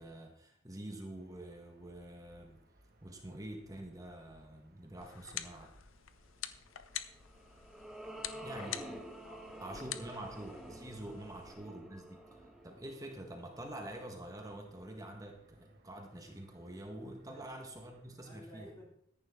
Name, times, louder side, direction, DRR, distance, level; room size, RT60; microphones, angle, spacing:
voice 1, 0.0-2.6 3.0-5.7 8.4-8.8 9.6-12.2 12.6-18.7, right 1 dB, 15° right, 3 dB, 1.5 m, -46 dB
sound 1, 1.1-18.3, right 1 dB, 50° right, 1.8 m, -66 dB
sound 2, 5.0-11.5, left 11 dB, 85° left, 0.8 m, -46 dB
sound 3, 7.1-13.7, right 1 dB, ahead, 1.3 m, -49 dB
voice 2, 8.1-8.7 9.2-9.6 11.1-11.3 17.2-17.4 18.0-18.9, equal, 15° left, -4 dB, 3.2 m, -56 dB
14.0 x 10.5 x 3.7 m, 0.68 s
head